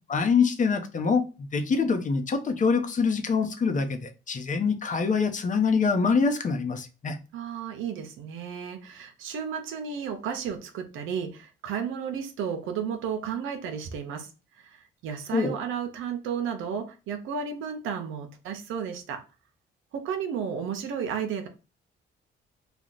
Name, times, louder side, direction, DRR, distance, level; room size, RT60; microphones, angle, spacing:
voice 1, 0.1-7.2 15.3-15.6, left 5 dB, 40° left, 0.8 m, -25 dB
voice 2, 7.3-14.3 14.6-19.2 19.9-21.5, right 7 dB, 85° right, 0.7 m, -33 dB
3.3 x 2.3 x 3.9 m
cardioid pair, 90°, 20 cm